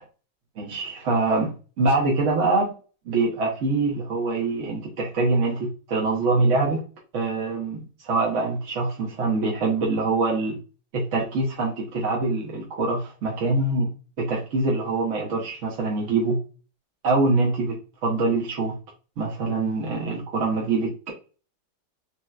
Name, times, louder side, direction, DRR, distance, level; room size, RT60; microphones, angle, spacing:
voice 1, 0.6-2.7 3.1-6.8 7.1-10.6 10.9-13.9 14.2-16.4 17.0-17.7 18.0-18.8 19.2-21.1, right 3 dB, 60° right, -3 dB, 0.8 m, -24 dB
4.2 x 2.1 x 2.3 m, 0.36 s
omnidirectional pair, 2.2 m